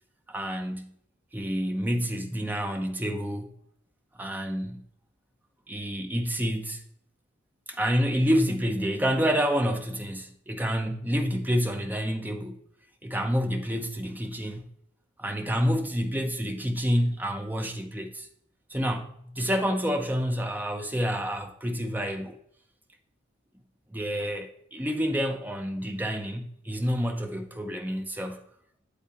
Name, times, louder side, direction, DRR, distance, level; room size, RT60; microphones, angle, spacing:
voice 1, 0.3-0.9 1.3-3.5 4.2-4.8 5.7-6.8 7.7-12.6 13.0-14.6 15.2-18.3 18.7-22.4 23.9-28.4, equal, 10° right, 0.6 m, -28 dB
8.3 x 7.9 x 2.9 m
head